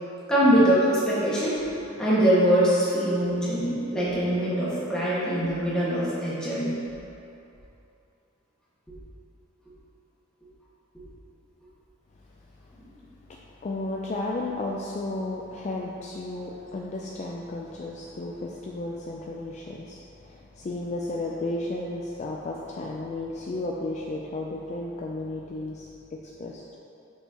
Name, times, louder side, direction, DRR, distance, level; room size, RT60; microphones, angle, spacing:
voice 1, 0.3-1.6 2.0-6.8, equal, 5° left, -10 dB, 1.5 m, -23 dB
voice 2, 13.3-26.8, left 2 dB, 35° left, -2 dB, 0.4 m, -33 dB
6.5 x 5.6 x 2.8 m, 2.8 s
head